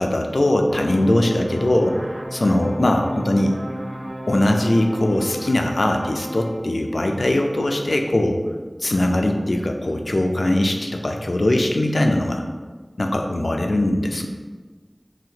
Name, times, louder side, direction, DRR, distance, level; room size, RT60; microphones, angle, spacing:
voice 1, 0.0-2.0 2.3-3.5 4.3-8.4 8.8-12.4 13.0-14.3, left 1 dB, 85° left, 3 dB, 0.3 m, -20 dB
sound 1, 0.7-6.5, right 1 dB, 65° right, 0.5 m, -34 dB
3.9 x 2.6 x 2.8 m, 1.4 s
wide cardioid pair, 45°, 0 cm